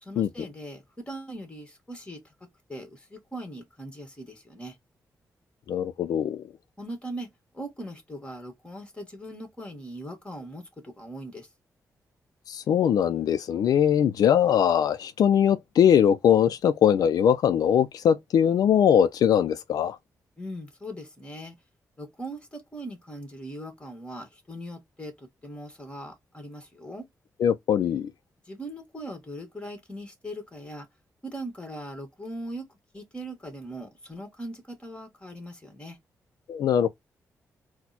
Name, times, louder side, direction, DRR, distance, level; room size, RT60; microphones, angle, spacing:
voice 1, 0.0-2.3 2.7-4.7 6.8-7.3 7.5-11.5 20.4-21.5 22.0-27.1 28.5-30.9 31.2-32.7 32.9-36.0, right 1 dB, 15° left, 1.7 m, -40 dB
voice 2, 5.7-6.4 12.5-20.0 27.4-28.1 36.5-36.9, left 9 dB, 80° left, 0.4 m, -21 dB
4.2 x 2.2 x 4.2 m
cardioid pair, 85°, 6 cm